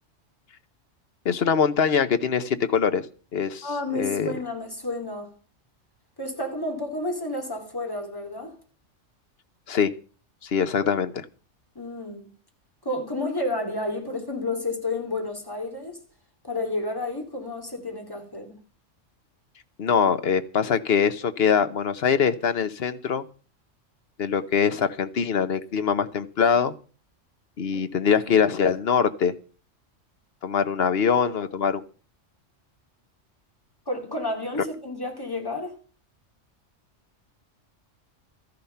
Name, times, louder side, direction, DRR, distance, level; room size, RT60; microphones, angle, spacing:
voice 1, 1.2-3.1 3.3-3.7 3.9-4.3 9.7-9.9 10.4-11.2 19.8-23.2 24.2-26.7 27.6-29.3 30.4-31.8, left 6 dB, 55° left, 1.1 m, -23 dB
voice 2, 3.6-5.3 6.2-8.6 11.7-12.2 12.8-16.0 16.4-18.6 27.7-27.8 30.9-31.0 33.9-35.8, left 2 dB, 15° left, 2.8 m, -31 dB
13.5 x 10.5 x 5.7 m
omnidirectional pair, 1.3 m